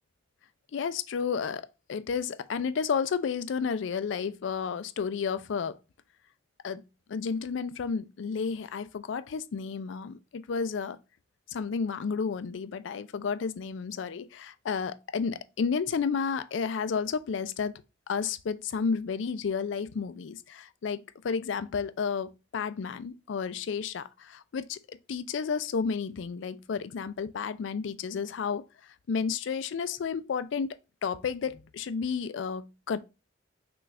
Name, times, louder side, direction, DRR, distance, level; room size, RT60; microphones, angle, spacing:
voice 1, 0.7-5.8 6.6-6.8 7.1-11.0 11.5-17.7 18.1-28.6 29.1-30.8 31.0-33.0, left 6 dB, 80° left, 0.4 m, -32 dB
6.0 x 2.4 x 3.2 m
head